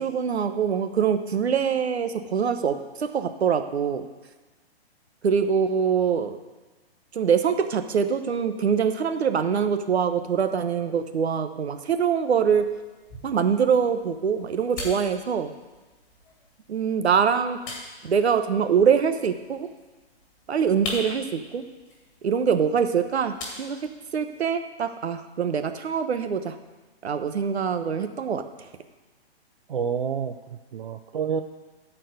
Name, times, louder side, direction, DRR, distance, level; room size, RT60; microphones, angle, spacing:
voice 1, 0.0-4.1 5.2-6.4 7.1-12.7 13.2-15.5 16.7-17.6 18.0-19.7 20.5-21.6 22.2-26.5 27.0-28.4, right 7 dB, 75° right, 9 dB, 1.1 m, -24 dB
sound 1, 12.5-24.5, left 2 dB, 20° left, 1.8 m, -42 dB
voice 2, 29.7-31.4, right 7 dB, 55° right, 7 dB, 0.6 m, -29 dB
13.5 x 4.7 x 8.0 m, 1.2 s
hypercardioid pair, 175°, 32 cm